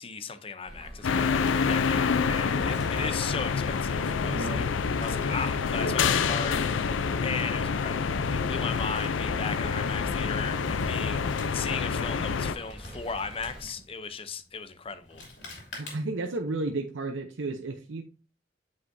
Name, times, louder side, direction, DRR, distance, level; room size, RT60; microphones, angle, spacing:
voice 1, 0.0-4.6 5.0-15.2, left 5 dB, 30° left, 0.6 m, -37 dB
sound 1, 0.6-13.6, equal, 5° right, 2.5 m, -46 dB
sound 2, 1.0-12.5, left 5 dB, 90° left, 0.5 m, -27 dB
Male speech man speaking, 1.0-16.3, left 2 dB, 70° left, 2.9 m, -49 dB
voice 2, 4.3-4.7 15.8-18.0, right 2 dB, 90° right, 0.7 m, -32 dB
8.4 x 5.0 x 2.6 m
head